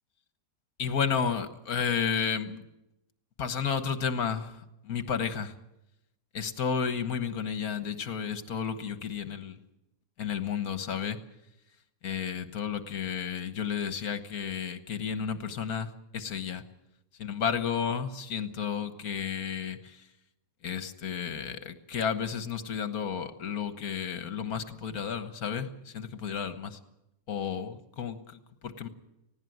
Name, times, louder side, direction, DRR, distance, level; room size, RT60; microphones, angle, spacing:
voice 1, 0.8-2.7 3.4-5.5 6.3-9.6 10.2-11.2 12.0-16.6 17.2-20.1 20.6-26.8 27.3-28.9, left 7 dB, 60° left, 10 dB, 1.7 m, -32 dB
19.5 x 16.5 x 9.3 m, 0.88 s
omnidirectional pair, 1.8 m